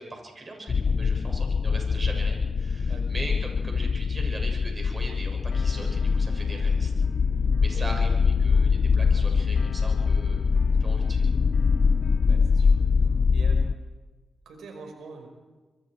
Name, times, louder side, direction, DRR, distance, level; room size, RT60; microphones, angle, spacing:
voice 1, 0.0-6.9 7.6-10.4 10.8-11.3, right 2 dB, 30° right, 2 dB, 7.1 m, -40 dB
sound 1, 0.7-13.7, left 5 dB, 55° left, 0.6 m, -23 dB
sound 2, 5.5-13.6, left 7 dB, 80° left, 1.7 m, -48 dB
voice 2, 7.7-8.1 11.4-11.5 12.3-12.8 13.3-13.7 14.5-15.3, right 4 dB, 85° right, 4 dB, 5.5 m, -43 dB
25.5 x 23.0 x 4.8 m, 1.3 s
cardioid pair, 70°, 0 cm